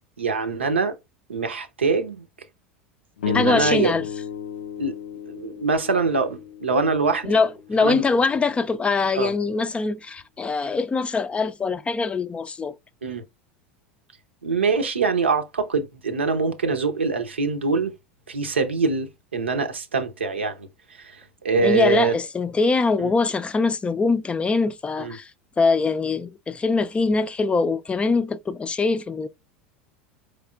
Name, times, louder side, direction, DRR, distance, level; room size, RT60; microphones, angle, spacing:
voice 1, 0.2-0.9 1.3-2.2 3.2-3.9 4.8-4.9 5.3-7.3 7.8-8.0 9.1-9.3 13.0-13.2 14.4-17.9 18.3-20.7 21.0-22.1 23.0-23.1 25.0-25.2, right 4 dB, 90° right, 0.7 m, -24 dB
sound 1, 3.2-7.7, left 8 dB, 80° left, 0.5 m, -33 dB
voice 2, 3.3-4.1 7.2-12.8 21.6-25.3 25.6-29.3, left 4 dB, 20° left, 0.4 m, -23 dB
4.8 x 3.2 x 2.2 m
hypercardioid pair, 80°, 6 cm